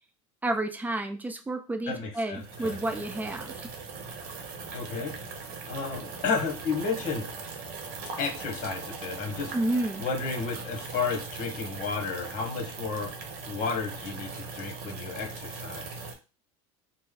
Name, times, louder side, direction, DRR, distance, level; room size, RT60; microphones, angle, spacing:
voice 1, 0.4-3.5 9.5-10.0, right 1 dB, 10° right, 5 dB, 0.5 m, -30 dB
voice 2, 1.9-2.8 4.7-5.1 5.7-7.2 8.2-9.5 10.0-13.1 13.5-16.1, left 5 dB, 50° left, 4 dB, 1.0 m, -32 dB
Boiling Water, 2.4-16.1, right 4 dB, 55° right, 0.9 m, -40 dB
3.1 x 2.1 x 3.6 m, 0.31 s
supercardioid pair, 115°, 17 cm